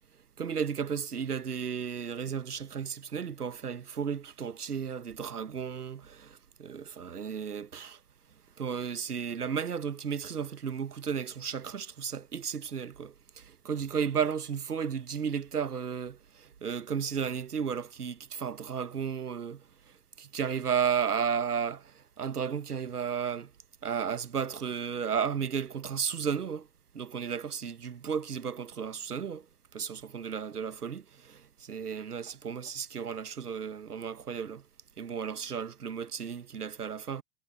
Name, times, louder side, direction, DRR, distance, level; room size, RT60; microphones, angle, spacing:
voice 1, 0.4-8.0 8.6-19.6 20.2-23.5 23.8-26.7 26.9-29.5 29.7-34.6 35.0-37.2, right 7 dB, 85° right, 1.1 m, -34 dB
figure-of-eight pair, 85°, 45 cm